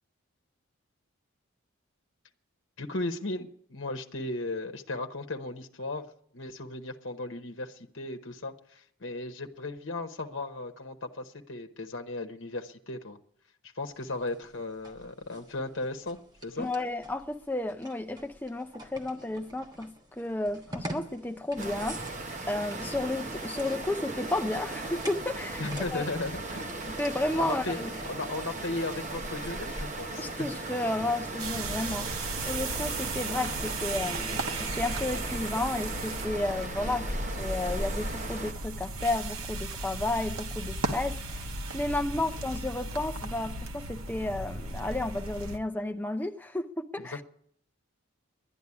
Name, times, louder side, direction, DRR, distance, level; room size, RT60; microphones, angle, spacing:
voice 1, 2.8-6.1 6.3-13.2 13.8-16.7 25.6-26.6 27.4-27.8 28.0-30.2 36.9-37.2 42.1-42.2 47.0-47.2, left 2 dB, 60° left, 1.0 m, -36 dB
sound 1, 13.8-28.1, right 1 dB, 20° right, 1.3 m, -47 dB
voice 2, 16.6-22.0 22.5-25.6 25.9-26.0 26.9-27.9 30.2-32.1 32.4-37.1 37.4-47.2, left 2 dB, 10° left, 0.5 m, -32 dB
sound 2, 21.6-38.5, right 2 dB, 35° right, 1.2 m, -37 dB
sound 3, 31.4-45.6, right 2 dB, 85° right, 1.2 m, -36 dB
11.5 x 10.0 x 9.7 m
head